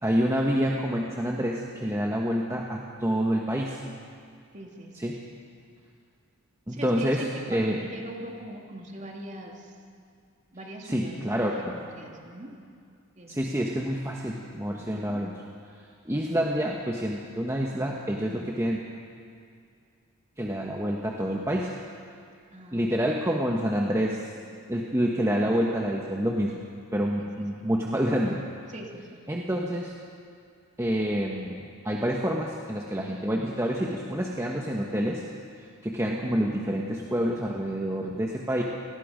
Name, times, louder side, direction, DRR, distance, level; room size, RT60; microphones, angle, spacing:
voice 1, 0.0-3.8 5.0-5.1 6.7-7.2 7.5-7.8 10.9-11.8 13.3-15.3 16.0-18.8 20.4-21.7 22.7-24.2 24.7-26.6 26.9-28.4 29.3-29.9 30.8-35.2 35.8-38.6, equal, 15° right, -2 dB, 1.3 m, -27 dB
voice 2, 4.5-5.1 6.7-9.8 10.5-12.6 13.1-13.6 14.8-15.3 22.5-23.2 27.2-27.5 28.7-29.2, right 1 dB, 35° right, 0 dB, 2.7 m, -42 dB
29.5 x 19.0 x 5.2 m, 2.3 s
head